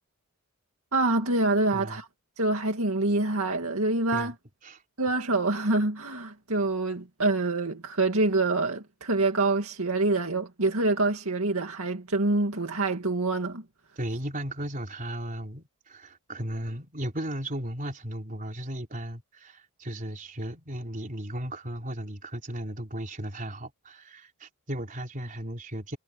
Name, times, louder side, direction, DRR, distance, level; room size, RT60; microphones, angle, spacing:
voice 1, 0.9-2.1 2.4-4.3 5.0-13.6, right 2 dB, 65° right, 2.4 m, -26 dB
voice 2, 14.0-26.0, right 1 dB, 35° right, 4.1 m, -36 dB
head